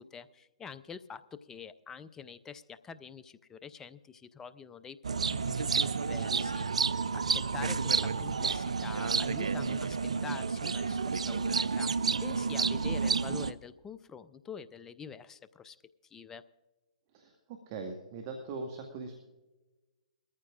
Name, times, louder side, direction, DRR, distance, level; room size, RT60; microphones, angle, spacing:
voice 1, 0.0-6.7 7.1-10.0 10.2-15.8 16.0-16.4, left 6 dB, 15° left, 15 dB, 0.5 m, -46 dB
sound 1, 5.0-13.5, right 5 dB, 80° right, 0.5 m, -30 dB
voice 2, 17.1-19.1, right 3 dB, 40° right, 4 dB, 1.7 m, -41 dB
21.5 x 14.0 x 2.5 m, 1.1 s
hypercardioid pair, 130°, 3 cm